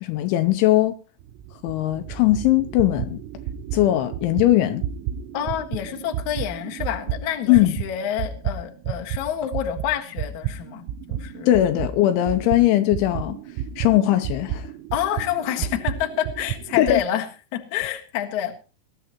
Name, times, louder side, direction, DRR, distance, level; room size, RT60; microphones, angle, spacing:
voice 1, 0.0-0.9 1.6-3.2 3.7-4.8 7.5-7.8 11.5-13.4 13.8-14.7 16.8-17.0, left 14 dB, 80° left, 2.9 m, -19 dB
sound 1, 1.2-9.2 9.5-17.0, right 9 dB, 90° right, 3.5 m, -32 dB
voice 2, 5.3-11.6 14.9-18.5, left 10 dB, 65° left, 2.0 m, -28 dB
21.5 x 12.5 x 3.0 m
omnidirectional pair, 5.8 m